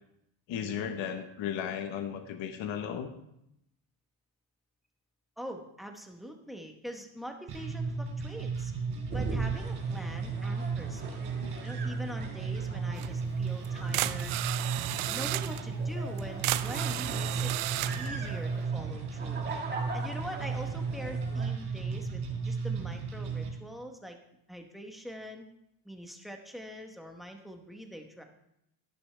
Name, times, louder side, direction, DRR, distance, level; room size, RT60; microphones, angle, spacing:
voice 1, 0.5-3.1 11.4-11.5, left 8 dB, 65° left, 7 dB, 1.1 m, -35 dB
voice 2, 5.4-8.7 9.1-11.2 11.6-14.4 15.1-17.5 17.9-19.5 19.9-24.2 24.5-25.5 25.8-28.2, equal, ahead, 4 dB, 1.0 m, -44 dB
sound 1, 7.5-23.5, right 4 dB, 55° right, 3.8 m, -34 dB
sound 2, 9.1-21.5, right 3 dB, 20° right, 1.8 m, -42 dB
sound 3, 13.0-13.1 13.6-13.7 13.9-15.6 16.2-18.1, right 17 dB, 80° right, 0.6 m, -33 dB
12.5 x 11.5 x 3.3 m, 0.79 s
cardioid pair, 160°, 48 cm